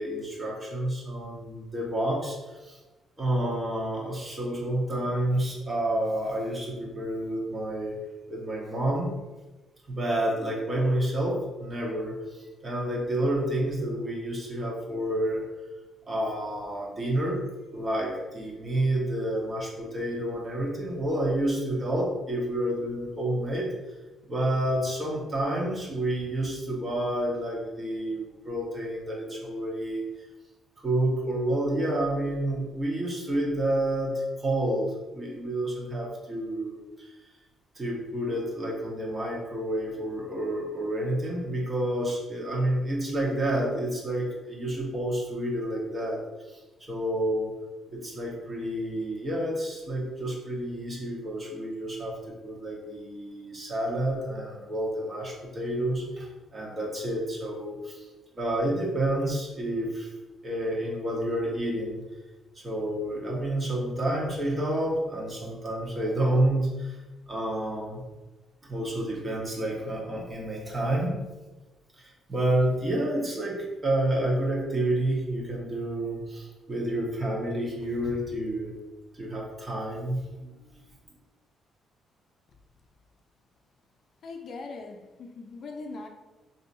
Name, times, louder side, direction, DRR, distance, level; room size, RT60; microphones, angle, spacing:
voice 1, 0.0-2.8 3.2-8.0 8.3-9.1 9.9-15.4 16.1-17.4 17.7-23.7 24.3-30.0 30.8-37.1 37.7-46.6 46.9-47.5 47.9-58.0 58.3-60.1 60.4-62.0 62.5-67.0 67.3-68.0 68.7-71.1 72.0-78.7 79.1-80.7, right 1 dB, 30° right, 1.1 m, -29 dB
voice 2, 84.2-86.1, left 3 dB, 55° left, 0.4 m, -40 dB
4.0 x 2.7 x 2.6 m
cardioid pair, 90°, 0 cm